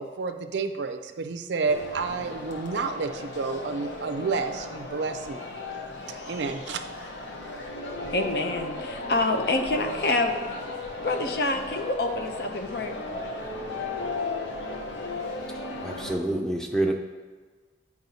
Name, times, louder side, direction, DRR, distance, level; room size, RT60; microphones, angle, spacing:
voice 1, 0.0-5.4 6.3-6.8, right 4 dB, 75° right, 8 dB, 0.5 m, -30 dB
sound 1, 1.7-16.2, left 2 dB, 80° left, 0.9 m, -36 dB
voice 2, 8.1-10.6 11.0-13.0, left 2 dB, 60° left, 5 dB, 0.6 m, -27 dB
voice 3, 15.8-16.9, right 1 dB, 5° left, 2 dB, 0.5 m, -27 dB
9.3 x 4.7 x 2.8 m, 1.4 s
head